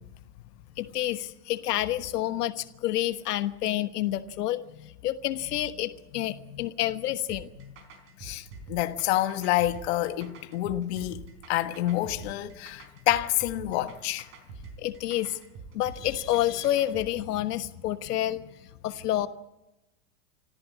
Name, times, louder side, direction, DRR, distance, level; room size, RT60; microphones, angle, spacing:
voice 1, 0.8-7.7 14.8-15.4 15.7-18.4 18.8-19.3, left 13 dB, 80° left, 1.3 m, -29 dB
sound 1, 7.3-17.1, right 4 dB, 25° right, 4.0 m, -46 dB
voice 2, 8.2-14.3, left 14 dB, 45° left, 1.5 m, -28 dB
26.0 x 14.5 x 8.5 m
supercardioid pair, 170°, 47 cm